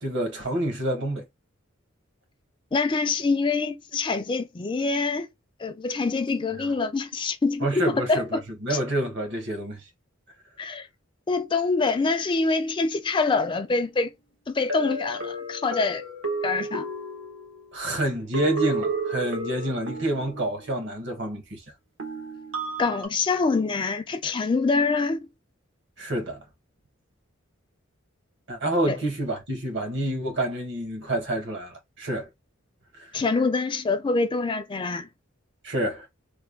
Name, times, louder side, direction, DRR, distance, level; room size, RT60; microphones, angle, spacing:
voice 1, 0.0-1.3 6.6-6.7 7.6-8.2 8.6-9.8 17.7-21.6 26.0-26.4 28.5-32.3 32.9-33.1 35.6-36.1, right 1 dB, 60° right, 1.4 m, -28 dB
voice 2, 2.7-5.3 5.6-8.4 8.7-8.8 10.6-10.9 11.3-14.1 14.5-16.0 16.4-16.9 22.8-25.2 28.9-29.0 33.1-35.1, left 4 dB, 25° left, 0.4 m, -25 dB
sound 1, 13.5-13.6 14.7-17.8 18.3-20.9 22.0-23.1, right 2 dB, 80° right, 1.4 m, -32 dB
3.4 x 2.2 x 3.4 m
head